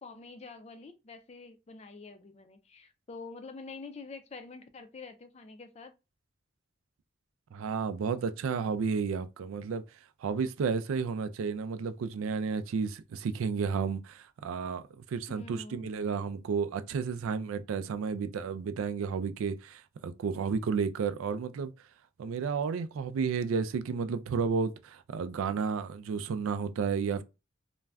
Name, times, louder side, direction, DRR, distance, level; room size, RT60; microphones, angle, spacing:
voice 1, 0.0-5.9 15.3-15.9, left 3 dB, 30° left, 0.4 m, -46 dB
voice 2, 7.5-9.8 10.2-21.7 22.2-27.2, right 5 dB, 80° right, 0.3 m, -32 dB
2.4 x 2.2 x 3.3 m
head